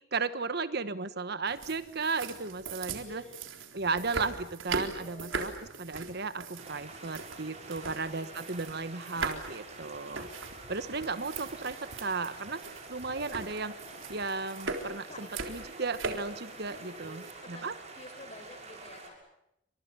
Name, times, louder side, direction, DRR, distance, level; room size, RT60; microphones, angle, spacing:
voice 1, 0.1-3.2 3.7-10.3 10.7-12.6 12.9-13.8 14.1-17.7, right 4 dB, 55° right, 13 dB, 1.3 m, -35 dB
sound 1, 1.5-17.3, right 4 dB, 75° right, 3.9 m, -41 dB
voice 2, 3.0-3.5 5.0-5.5 7.8-8.5 15.0-15.3 16.6-17.7 18.0-19.2, left 1 dB, 35° left, 9 dB, 4.8 m, -50 dB
sound 2, 6.6-19.1, right 3 dB, 35° right, 7.1 m, -47 dB
29.0 x 26.0 x 6.9 m, 0.82 s
head